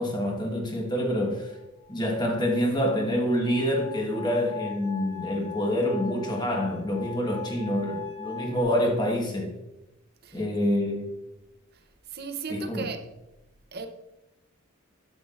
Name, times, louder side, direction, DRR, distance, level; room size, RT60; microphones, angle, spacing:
voice 1, 0.0-1.5 1.9-9.5 10.3-11.1 12.5-12.8, equal, 20° left, 1.2 m, -27 dB
sound 1, 1.5-8.6, left 9 dB, 75° left, 3.1 m, -41 dB
voice 2, 12.1-13.1 13.7-13.9, right 4 dB, 45° right, 0.7 m, -35 dB
9.5 x 7.4 x 2.5 m
head